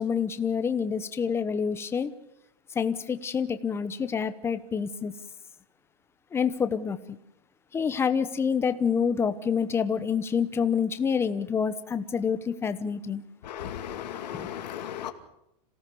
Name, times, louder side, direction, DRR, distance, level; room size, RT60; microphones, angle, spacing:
voice 1, 0.0-2.1 2.8-5.1 6.3-7.0 7.7-13.2 14.3-14.5, left 6 dB, 10° left, 1.0 m, -27 dB
voice 2, 13.5-15.1, left 10 dB, 85° left, 2.5 m, -36 dB
27.5 x 17.5 x 7.0 m
supercardioid pair, 155°, 21 cm